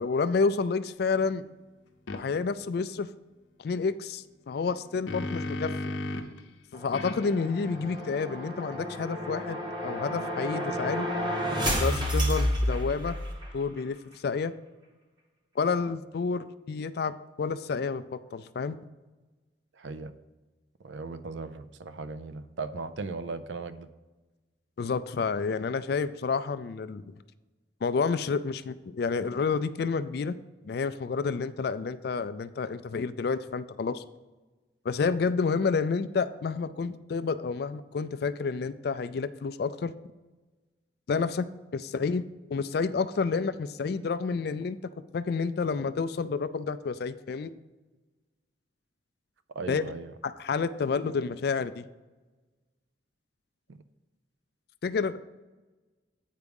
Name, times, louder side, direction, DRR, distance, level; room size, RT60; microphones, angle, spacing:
voice 1, 0.0-1.5 2.1-3.1 3.6-5.9 6.7-9.6 9.8-11.1 11.7-13.2 13.5-14.0 14.2-14.5 15.6-18.8 24.8-27.0 27.8-30.4 30.6-34.0 34.8-39.9 41.1-42.2 42.5-47.5 49.7-49.9 50.2-51.9 54.8-55.2, left 5 dB, 55° left, 13 dB, 0.3 m, -29 dB
sound 1, 2.1-2.2 4.6-6.4 6.9-10.3, left 2 dB, 90° left, 0.7 m, -38 dB
sound 2, 6.8-13.5, equal, 25° right, 1.1 m, -30 dB
voice 2, 19.8-20.1 20.8-23.9 49.5-50.1 53.7-53.8, right 4 dB, 70° right, 13 dB, 0.5 m, -37 dB
8.2 x 4.7 x 5.2 m, 1.2 s
head